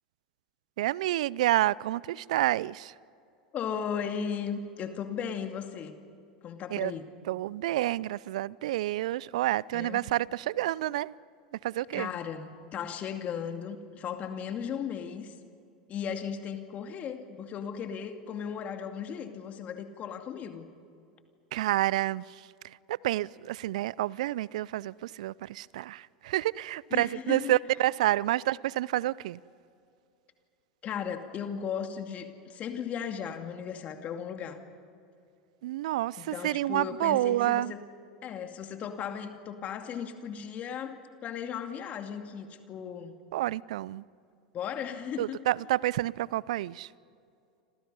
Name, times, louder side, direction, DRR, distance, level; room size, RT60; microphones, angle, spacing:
voice 1, 0.8-2.9 6.7-6.9 7.3-11.1 11.6-12.1 21.5-29.4 35.6-37.7 43.3-44.0 45.2-46.9, right 15 dB, 70° right, 24 dB, 0.5 m, -29 dB
voice 2, 3.5-6.0 6.4-7.0 9.7-10.0 11.9-15.3 15.9-20.7 26.9-27.5 30.8-34.6 36.2-37.8 38.2-43.1 44.5-45.4, left 7 dB, 40° left, 6 dB, 2.4 m, -36 dB
29.5 x 26.5 x 5.5 m, 2.5 s
hypercardioid pair, 85°, 4 cm